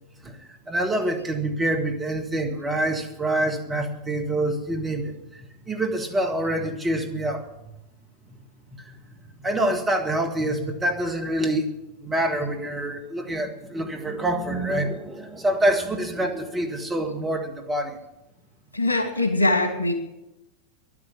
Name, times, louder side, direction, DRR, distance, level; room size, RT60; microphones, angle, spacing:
voice 1, 0.7-7.5 8.7-9.0 9.4-11.7 12.0-18.0, right 1 dB, 15° right, 3 dB, 1.8 m, -26 dB
voice 2, 18.7-19.9, left 2 dB, 90° right, 6 dB, 2.3 m, -22 dB
11.0 x 9.8 x 9.6 m, 0.93 s
figure-of-eight pair, 90°, 0 cm